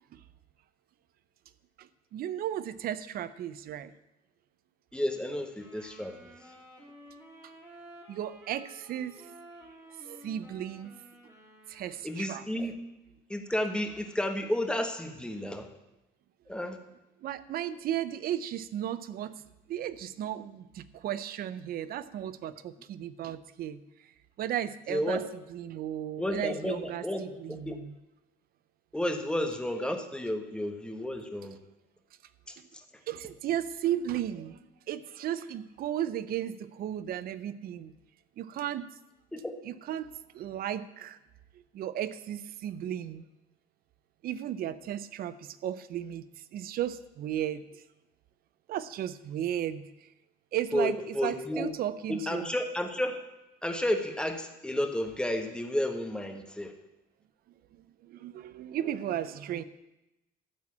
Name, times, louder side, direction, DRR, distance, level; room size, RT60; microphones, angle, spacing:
voice 1, 1.8-3.9 7.4-7.5 8.1-9.3 10.0-10.9 11.7-12.4 17.2-19.3 19.7-23.8 24.4-25.2 25.5-28.0 33.1-34.6 34.9-37.9 38.4-38.9 39.6-41.2 41.7-43.3 44.2-47.8 48.7-50.1 50.5-52.5 57.7-59.6, right 11 dB, 60° right, 15 dB, 0.6 m, -35 dB
voice 2, 4.9-6.1 12.0-12.8 13.3-15.7 16.5-16.8 24.9-25.2 26.2-27.2 27.5-27.8 28.9-31.6 32.5-32.6 39.3-39.4 50.7-51.6 52.1-53.2 53.6-56.7, left 1 dB, 5° left, 5 dB, 1.3 m, -31 dB
Wind instrument woodwind instrument, 5.5-12.5, right 1 dB, 15° right, 2.6 m, -53 dB
12.5 x 4.5 x 8.5 m, 0.94 s
cardioid pair, 110°, 17 cm